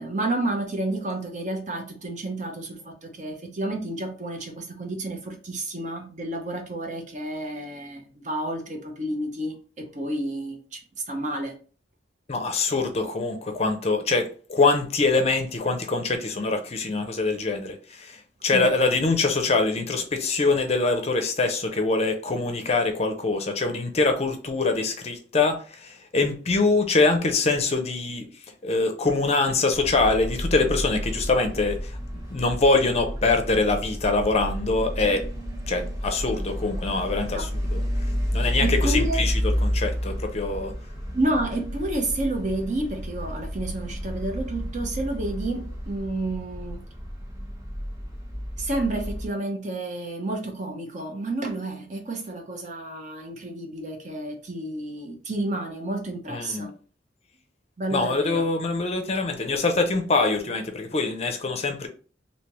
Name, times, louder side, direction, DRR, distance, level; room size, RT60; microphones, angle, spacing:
voice 1, 0.0-10.8 11.1-11.6 18.5-18.7 37.3-37.5 38.6-39.2 41.1-46.8 48.6-56.7 57.8-58.4, right 2 dB, 45° right, 0.7 m, -30 dB
voice 2, 12.3-28.3 28.6-32.0 32.3-35.3 35.7-37.8 38.3-40.7 56.3-56.7 57.9-61.9, left 3 dB, 35° left, 0.5 m, -24 dB
sound 1, 29.7-49.3, equal, 20° right, 0.9 m, -31 dB
3.3 x 2.7 x 2.9 m
head